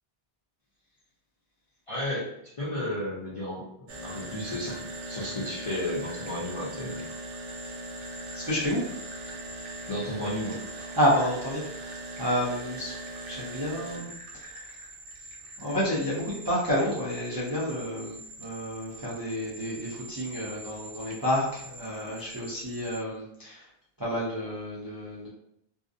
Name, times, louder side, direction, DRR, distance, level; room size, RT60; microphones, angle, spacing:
voice 1, 1.9-2.3 2.6-3.7 4.0-4.8 5.1-7.0 9.9-10.6, left 1 dB, 45° left, -8 dB, 0.5 m, -32 dB
sound 1, 3.9-23.0, right 2 dB, 85° right, 0.9 m, -41 dB
voice 2, 8.3-8.8 11.0-12.9 13.2-14.1 14.4-14.6 15.6-23.7 24.0-25.3, equal, 35° right, -8 dB, 0.3 m, -30 dB
2.5 x 2.0 x 2.5 m, 0.77 s
omnidirectional pair, 1.2 m